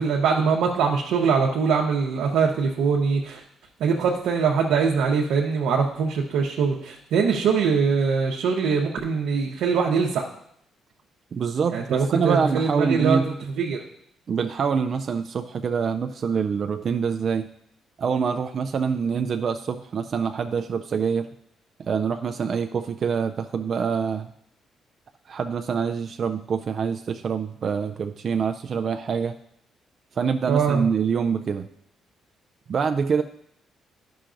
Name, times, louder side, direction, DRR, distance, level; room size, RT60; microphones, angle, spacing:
voice 1, 0.0-3.4 3.8-10.2 11.7-13.2 13.6-13.8 30.5-30.9, right 5 dB, 85° right, -1 dB, 0.7 m, -22 dB
voice 2, 11.3-13.2 14.3-17.5 18.0-21.3 21.8-24.3 25.3-29.4 30.2-31.7 32.7-33.2, right 6 dB, 50° right, 7 dB, 0.3 m, -25 dB
10.0 x 5.7 x 2.5 m, 0.71 s
cardioid pair, 90°, 0 cm